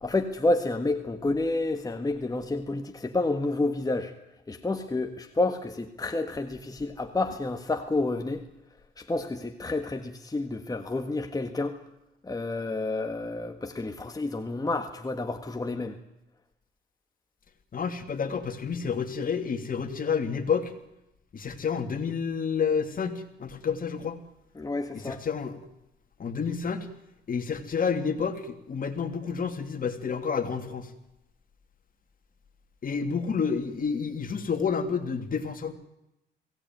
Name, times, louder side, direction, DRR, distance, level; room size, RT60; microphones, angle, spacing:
voice 1, 0.0-4.1 4.5-8.4 9.0-11.8 12.2-16.0 24.6-25.2, left 2 dB, 20° left, 6 dB, 1.7 m, -29 dB
voice 2, 17.7-20.7 21.3-24.2 24.9-25.6 26.2-26.9 27.3-30.9 32.8-35.7, left 6 dB, 45° left, 6 dB, 3.0 m, -29 dB
22.5 x 17.5 x 9.4 m, 0.90 s
cardioid pair, 90°, 20 cm